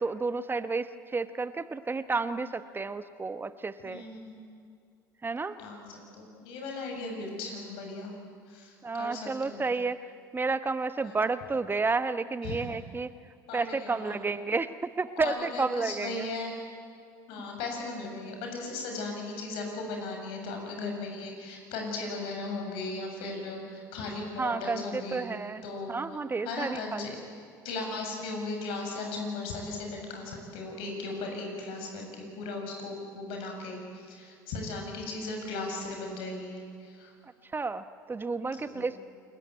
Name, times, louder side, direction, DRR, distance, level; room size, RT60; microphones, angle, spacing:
voice 1, 0.0-4.0 5.2-5.6 8.8-10.0 10.3-13.1 13.5-16.3 24.4-25.6 25.9-27.1 37.2-39.0, right 4 dB, 20° right, 12 dB, 1.0 m, -31 dB
voice 2, 3.8-4.4 5.6-8.1 8.5-9.7 11.0-11.3 12.4-12.7 13.5-14.1 15.2-16.5 17.3-25.3 25.6-26.2 26.4-27.2 27.6-37.1 38.5-38.9, left 3 dB, 65° left, 2 dB, 7.0 m, -37 dB
28.0 x 20.5 x 9.5 m, 2.2 s
hypercardioid pair, 70°, 10 cm